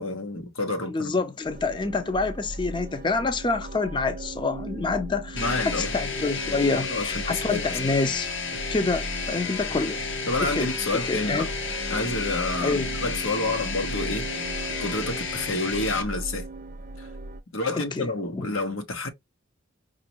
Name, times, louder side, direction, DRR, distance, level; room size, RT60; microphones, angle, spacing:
voice 1, 0.0-1.1 5.3-5.9 6.9-7.8 10.3-11.5 11.9-12.7 13.0-14.3 14.8-16.5 17.0-17.1 17.5-19.1, left 2 dB, 90° left, 1.1 m, -29 dB
voice 2, 0.9-8.3 8.7-10.0 10.4-11.5 12.6-12.9 17.8-18.5, left 3 dB, 25° left, 0.4 m, -27 dB
sound 1, 1.4-17.4, right 2 dB, 40° right, 0.4 m, -37 dB
sound 2, 5.4-16.0, left 5 dB, 60° left, 0.8 m, -32 dB
5.1 x 2.5 x 2.9 m
head